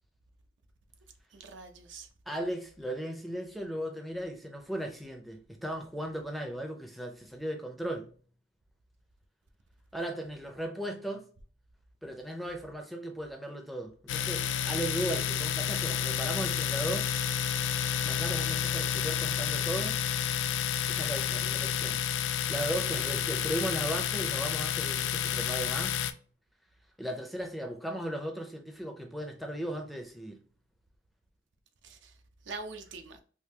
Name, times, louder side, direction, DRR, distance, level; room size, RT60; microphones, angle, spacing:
voice 1, 1.3-2.1 22.8-23.0 31.8-32.1 32.5-33.2, right 3 dB, 80° right, 0.5 m, -43 dB
voice 2, 2.3-8.1 9.9-11.3 12.0-17.1 18.0-20.0 20.9-22.0 22.5-26.0 27.0-30.4, right 1 dB, ahead, 0.4 m, -36 dB
Domestic sounds home sounds, 14.1-26.1, left 8 dB, 80° left, 0.3 m, -30 dB
3.7 x 2.6 x 2.8 m
head